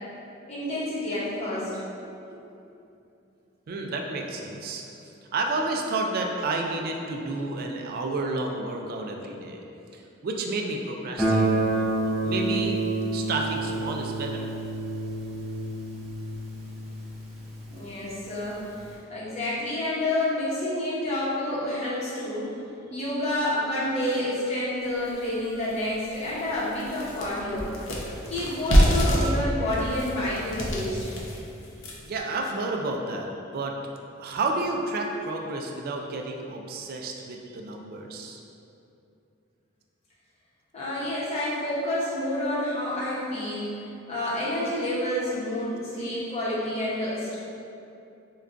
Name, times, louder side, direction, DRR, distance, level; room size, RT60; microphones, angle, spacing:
voice 1, 0.5-1.7 17.7-18.6 19.1-22.5 22.9-27.7 28.3-31.1 40.7-43.8 44.1-47.4, left 1 dB, 30° left, -8 dB, 0.8 m, -29 dB
voice 2, 2.0-2.4 3.7-4.8 5.3-9.6 9.9-12.8 13.1-14.5 32.0-33.8 34.2-38.4, right 2 dB, 45° right, 2 dB, 0.3 m, -31 dB
Guitar, 11.2-17.9, right 2 dB, ahead, 0.6 m, -28 dB
sound 1, 25.1-25.2 25.7-25.8 26.1-32.2, equal, 65° left, 0.5 m, -26 dB
4.6 x 2.2 x 2.5 m, 2.7 s
head